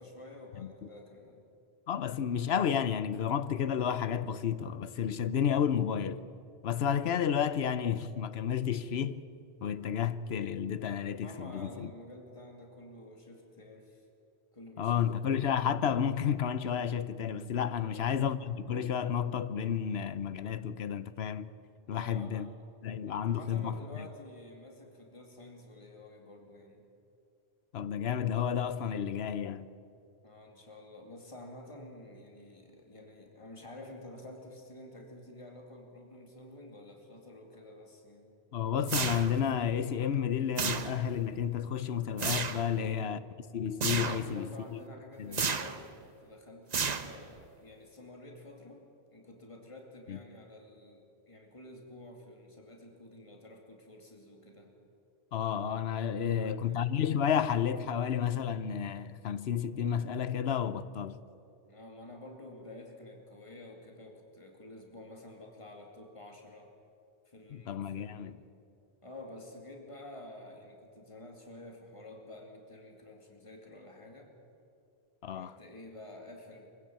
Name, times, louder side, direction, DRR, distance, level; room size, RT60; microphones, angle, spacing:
voice 1, 0.0-1.4 11.2-14.1 14.5-15.5 17.8-18.1 21.9-22.5 23.1-26.9 30.2-38.3 42.7-43.2 44.1-54.7 56.2-56.8 61.6-66.7 67.3-68.3 69.0-74.3 75.3-76.7, left 1 dB, 30° left, 2.6 m, -50 dB
voice 2, 1.9-6.2 6.6-9.2 9.6-11.9 14.8-21.5 21.9-22.5 22.8-24.1 27.7-29.7 38.5-43.2 43.5-44.8 45.2-45.6 50.1-50.2 55.3-61.2 67.5-68.4 75.2-75.5, left 8 dB, 70° left, 1.0 m, -31 dB
sound 1, 38.9-39.5 40.6-41.2 42.2-42.7 43.8-44.3 45.3-45.9 46.7-47.4, right 5 dB, 40° right, 0.9 m, -32 dB
23.5 x 15.5 x 8.8 m
omnidirectional pair, 1.1 m